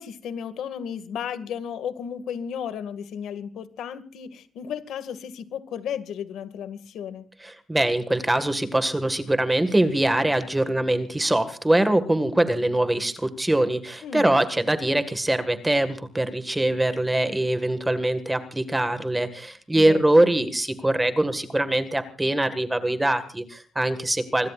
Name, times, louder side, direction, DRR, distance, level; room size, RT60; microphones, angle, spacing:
voice 1, 0.0-7.2 14.0-14.4 19.7-20.0, left 8 dB, 80° left, 11 dB, 2.0 m, -34 dB
voice 2, 7.4-24.5, right 1 dB, 10° right, 10 dB, 1.8 m, -23 dB
26.0 x 22.5 x 2.5 m, 0.41 s
cardioid pair, 165°, 0 cm